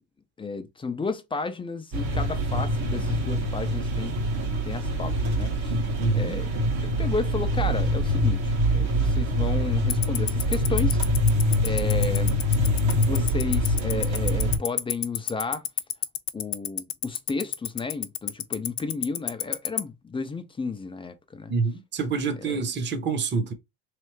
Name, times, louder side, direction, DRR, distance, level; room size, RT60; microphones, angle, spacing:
voice 1, 0.4-4.1 4.6-5.8 6.1-6.5 6.8-11.0 11.6-12.3 13.0-15.6 16.3-21.5 22.4-22.7, left 4 dB, 15° left, 0.3 m, -33 dB
sound 1, 1.9-14.6, equal, 70° right, 1.7 m, -24 dB
voice 2, 6.0-6.4 21.5-23.5, right 5 dB, 25° right, 0.8 m, -26 dB
Tick-tock, 9.9-19.8, left 16 dB, 60° left, 0.7 m, -26 dB
3.6 x 3.3 x 3.1 m
cardioid pair, 130°, 48 cm